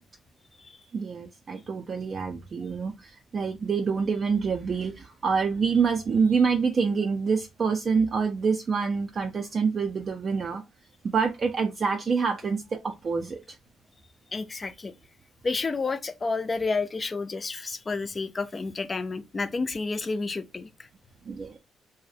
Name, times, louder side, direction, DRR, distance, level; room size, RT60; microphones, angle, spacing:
voice 1, 0.9-10.6 11.0-13.6 21.3-21.6, right 5 dB, 45° right, 0.3 m, -26 dB
voice 2, 14.3-14.9 15.4-20.7, left 3 dB, 30° left, 0.3 m, -30 dB
2.4 x 2.0 x 2.6 m
cardioid pair, 90°, 0 cm